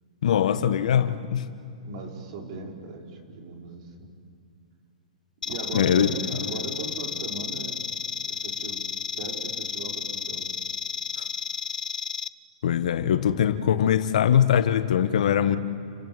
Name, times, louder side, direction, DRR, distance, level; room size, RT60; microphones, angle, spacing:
voice 1, 0.2-1.4 5.7-6.1 12.6-15.6, left 9 dB, 65° left, 1.4 m, -22 dB
voice 2, 1.7-4.1 5.4-7.9 8.3-8.8 9.2-10.5, right 4 dB, 50° right, 5.4 m, -38 dB
sound 1, 5.4-12.3, left 6 dB, 80° left, 0.8 m, -32 dB
30.0 x 22.5 x 8.1 m
hypercardioid pair, 115°, 4 cm